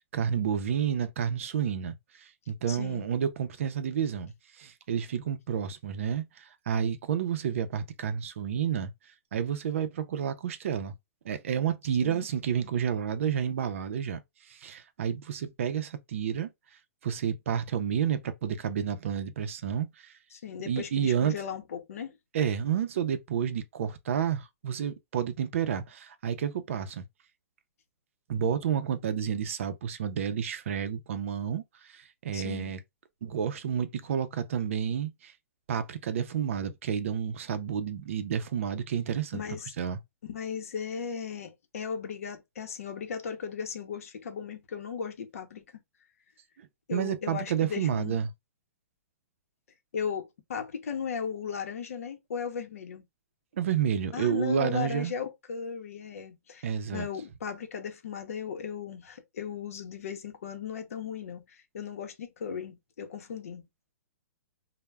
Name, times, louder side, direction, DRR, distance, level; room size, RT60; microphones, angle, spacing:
voice 1, 0.0-1.9 2.5-8.9 9.3-10.9 11.3-14.2 14.5-16.5 17.0-20.1 20.7-21.3 22.3-27.0 28.3-31.6 31.9-32.8 33.2-35.3 35.7-39.4 39.8-40.0 46.6-48.3 53.6-55.1 56.6-57.1, right 8 dB, 60° right, 0.4 m, -30 dB
voice 2, 2.7-3.0 12.0-12.3 20.3-22.2 32.3-32.7 39.3-39.7 40.3-45.8 46.9-48.2 49.9-53.0 54.1-63.6, left 7 dB, 70° left, 0.6 m, -36 dB
2.2 x 2.0 x 3.2 m
hypercardioid pair, 165°, 8 cm